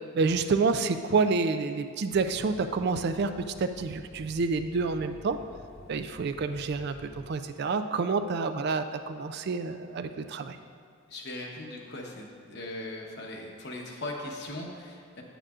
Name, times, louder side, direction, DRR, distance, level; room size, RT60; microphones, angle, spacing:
voice 1, 0.0-5.4 5.9-10.6, right 4 dB, 50° right, 10 dB, 0.3 m, -28 dB
sound 1, 2.1-7.3, equal, 70° left, 1.7 m, -51 dB
voice 2, 11.1-15.2, left 1 dB, 55° left, 0 dB, 1.0 m, -39 dB
9.0 x 8.5 x 2.4 m, 2.4 s
head